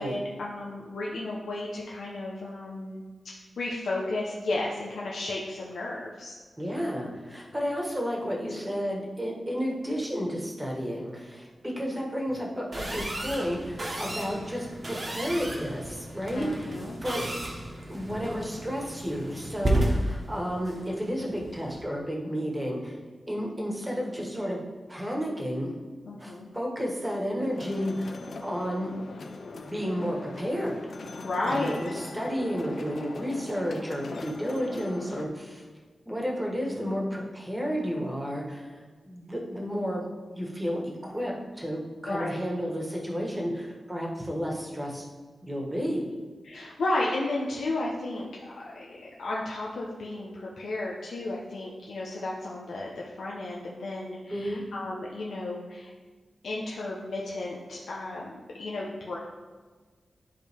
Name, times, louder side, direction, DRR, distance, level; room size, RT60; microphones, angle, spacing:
voice 1, 0.0-3.0 3.6-6.3 16.3-17.0 26.0-26.5 31.2-31.7 42.0-42.3 46.4-55.9 56.4-59.2, left 2 dB, 85° left, -4 dB, 0.9 m, -33 dB
voice 2, 6.6-17.2 17.9-23.0 23.3-24.6 24.9-25.7 26.2-28.9 29.6-30.9 31.4-35.6 36.1-45.1 45.4-46.1 54.3-54.6, equal, 10° right, -1 dB, 1.4 m, -32 dB
sound 1, 12.7-21.8, right 1 dB, 40° right, 1.2 m, -33 dB
sound 2, 27.0-35.3, left 3 dB, 60° left, 0.6 m, -41 dB
11.0 x 3.8 x 3.6 m, 1.4 s
wide cardioid pair, 125°, 0 cm